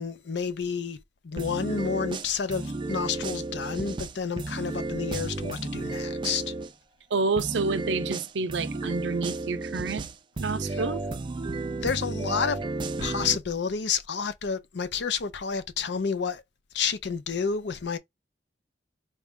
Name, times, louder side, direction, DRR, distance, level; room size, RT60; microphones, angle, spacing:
voice 1, 0.0-6.5 10.7-10.8 11.8-12.6 13.0-16.4 16.7-18.0, left 6 dB, 65° left, 0.5 m, -30 dB
sound 1, 1.4-6.7 7.4-13.4, right 2 dB, 25° right, 0.3 m, -33 dB
voice 2, 7.1-10.0 10.4-11.0, right 4 dB, 75° right, 0.6 m, -28 dB
4.1 x 2.4 x 3.5 m
head